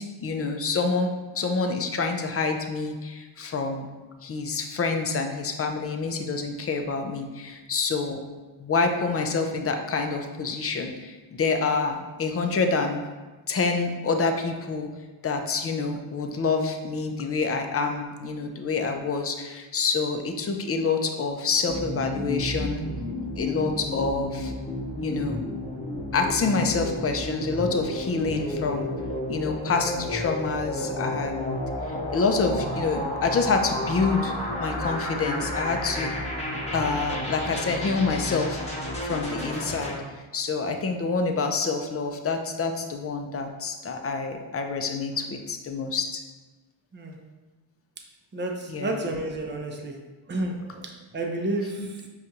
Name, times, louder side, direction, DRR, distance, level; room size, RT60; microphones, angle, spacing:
voice 1, 0.0-3.9 4.2-8.2 8.6-13.0 13.5-14.9 15.2-22.8 23.4-24.5 25.0-25.4 26.1-28.9 29.3-31.6 32.1-34.3 34.6-36.1 36.7-46.2 48.7-49.0 51.8-51.9, left 4 dB, 30° left, 5 dB, 0.5 m, -27 dB
sound 1, 21.7-40.0, left 1 dB, 15° left, 0.9 m, -32 dB
voice 2, 48.3-50.0 50.3-52.0, right 2 dB, 25° right, 2 dB, 0.6 m, -31 dB
5.0 x 2.4 x 2.8 m, 1.2 s
cardioid pair, 55°, 49 cm